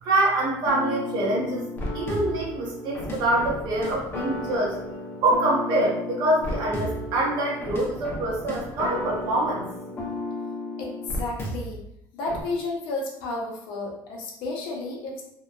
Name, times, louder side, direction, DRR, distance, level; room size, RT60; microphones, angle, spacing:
voice 1, 0.0-1.7 1.9-4.8 5.2-9.6, right 1 dB, 60° right, -2 dB, 0.7 m, -25 dB
sound 1, 0.6-11.8 12.3-12.4, left 1 dB, 25° left, 0.5 m, -33 dB
voice 2, 10.8-11.8 12.1-15.2, left 2 dB, 85° left, -1 dB, 0.7 m, -32 dB
2.8 x 2.1 x 2.2 m, 0.77 s
cardioid pair, 150°, 9 cm